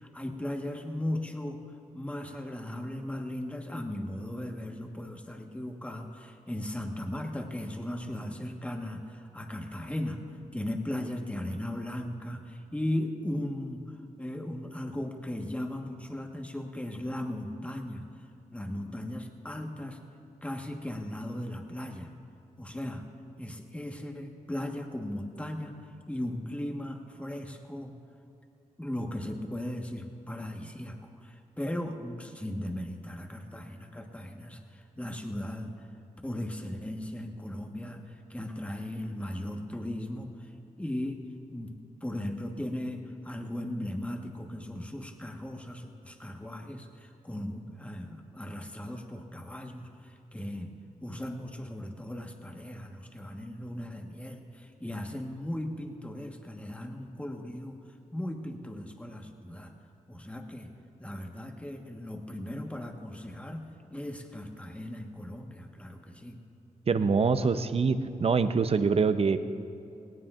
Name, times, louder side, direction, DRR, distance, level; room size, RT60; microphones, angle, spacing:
voice 1, 0.0-1.6 1.9-18.1 18.5-20.0 20.4-22.1 22.6-23.1 23.4-28.0 28.8-35.9 36.2-40.5 40.8-41.2 41.5-50.7 51.0-57.8 58.1-59.7 60.1-60.7 61.0-66.4, left 1 dB, 10° left, 3 dB, 1.3 m, -37 dB
voice 2, 66.9-69.4, right 5 dB, 45° right, 11 dB, 0.7 m, -25 dB
18.5 x 17.5 x 2.5 m, 2.6 s
cardioid pair, 80°, 14 cm